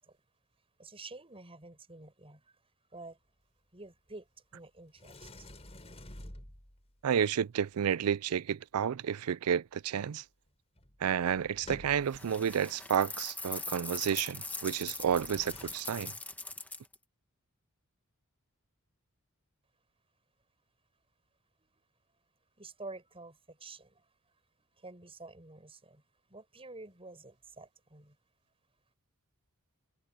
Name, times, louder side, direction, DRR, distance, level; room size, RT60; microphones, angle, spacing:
voice 1, 0.8-2.6 2.9-3.2 3.7-4.3 4.5-5.5 21.6-21.7 22.6-24.1 24.8-26.0 26.3-28.2, right 3 dB, 25° right, 7.1 m, -49 dB
Sliding door, 5.0-6.9 10.5-10.6 10.8-12.3 15.0-15.7, left 1 dB, 30° left, 4.4 m, -50 dB
voice 2, 7.0-10.2 11.0-16.1, right 8 dB, 85° right, 0.4 m, -31 dB
sound 1, 12.1-16.9, left 3 dB, 5° left, 1.5 m, -41 dB
head